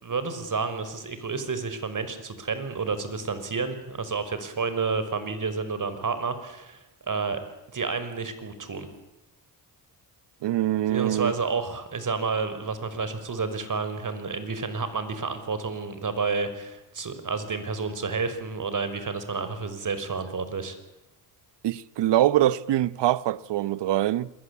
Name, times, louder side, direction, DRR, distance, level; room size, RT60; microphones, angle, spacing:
voice 1, 0.0-6.8 7.1-7.4 7.7-8.9 10.9-20.8, right 4 dB, 40° right, 5.7 m, -30 dB
voice 2, 10.4-11.3 21.6-24.3, right 13 dB, 60° right, 1.1 m, -24 dB
27.5 x 22.0 x 8.5 m
hypercardioid pair, 55°, 47 cm